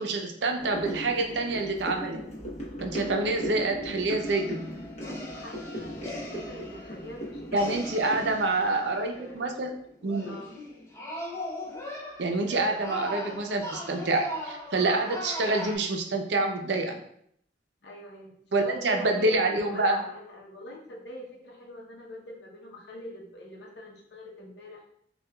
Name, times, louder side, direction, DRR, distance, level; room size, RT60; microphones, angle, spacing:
voice 1, 0.0-2.2 2.8-4.7 7.5-9.7 10.0-10.3 12.2-17.0 18.5-20.0, right 2 dB, 75° right, 3 dB, 0.6 m, -27 dB
sound 1, 0.6-9.9 10.3-10.4, equal, 35° left, 0.9 m, -38 dB
sound 2, 4.2-9.3 10.0-15.8, left 1 dB, 15° left, 0.6 m, -39 dB
voice 2, 5.0-7.8 9.1-9.4 10.2-10.5 17.8-18.3 18.6-24.9, equal, 70° left, -2 dB, 0.8 m, -43 dB
6.5 x 2.4 x 2.3 m, 0.69 s
head